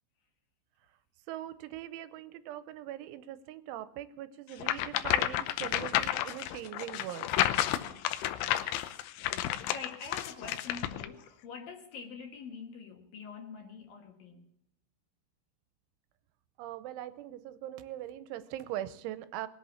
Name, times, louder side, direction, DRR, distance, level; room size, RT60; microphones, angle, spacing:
voice 1, 1.3-7.3 16.6-19.5, right 12 dB, 90° right, 3.2 m, -41 dB
sound 1, 4.6-11.1, left 13 dB, 90° left, 3.3 m, -31 dB
voice 2, 9.2-14.5, left 5 dB, 65° left, 2.5 m, -45 dB
21.0 x 8.2 x 7.1 m
omnidirectional pair, 5.4 m